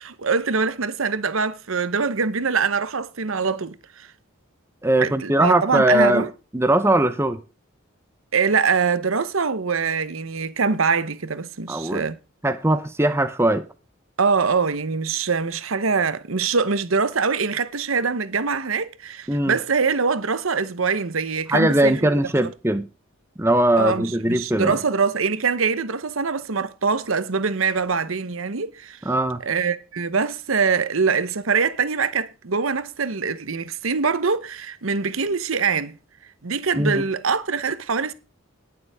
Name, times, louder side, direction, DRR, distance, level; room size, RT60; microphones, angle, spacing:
voice 1, 0.0-4.1 5.0-6.3 8.3-12.2 14.2-21.9 23.8-29.0 29.4-36.0 36.4-38.1, right 5 dB, 80° right, 0.9 m, -23 dB
voice 2, 4.8-6.3 6.5-7.4 11.7-12.0 12.4-13.7 19.3-19.6 21.5-22.9 23.4-24.8 29.1-29.4 36.8-37.0, right 1 dB, 10° right, 0.7 m, -20 dB
19.0 x 7.1 x 3.5 m
head